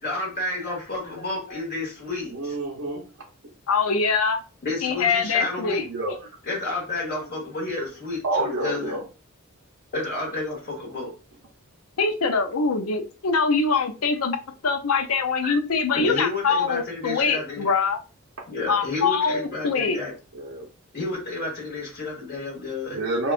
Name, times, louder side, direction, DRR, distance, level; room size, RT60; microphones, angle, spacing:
voice 1, 0.0-2.6 4.6-5.9 6.4-9.0 9.9-11.1 15.4-15.5 15.9-17.7 18.5-20.1 20.9-23.0, left 2 dB, 45° left, 1.2 m, -31 dB
voice 2, 2.3-3.0 5.9-6.1 8.2-9.0 20.3-20.6 22.9-23.3, right 2 dB, 70° right, 0.7 m, -27 dB
voice 3, 3.7-4.4 4.8-5.9 8.6-8.9 12.0-14.4 14.6-18.0 18.7-20.0, left 4 dB, 85° left, 0.6 m, -23 dB
5.2 x 2.3 x 2.4 m
head